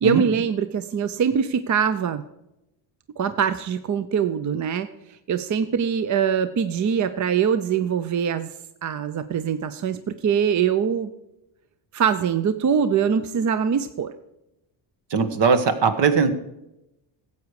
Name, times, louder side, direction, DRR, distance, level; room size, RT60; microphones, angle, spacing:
voice 1, 0.0-2.2 3.2-8.5 8.8-11.1 11.9-14.1, right 7 dB, 40° right, 12 dB, 0.6 m, -23 dB
voice 2, 15.1-16.3, right 5 dB, 60° right, 9 dB, 1.4 m, -19 dB
14.0 x 8.3 x 4.8 m, 0.90 s
cardioid pair, 90°, 47 cm